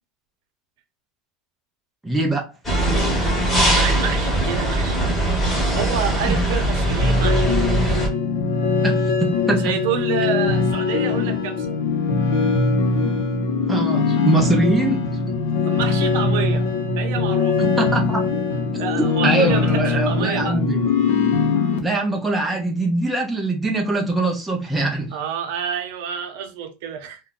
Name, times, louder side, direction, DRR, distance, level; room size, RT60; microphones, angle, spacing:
voice 1, 2.0-2.4 6.3-6.4 8.8-9.7 13.7-15.0 17.6-18.2 19.0-20.8 21.8-25.2, right 2 dB, 5° right, 0.5 m, -22 dB
sound 1, 2.6-8.1, right 1 dB, 10° left, 1.0 m, -20 dB
voice 2, 3.5-7.6 9.6-11.8 15.7-16.7 17.0-17.6 18.8-20.6 25.1-27.2, right 8 dB, 65° right, 0.7 m, -29 dB
sound 2, 7.0-21.8, left 4 dB, 80° left, 0.7 m, -21 dB
2.6 x 2.2 x 3.7 m
supercardioid pair, 175°, 0 cm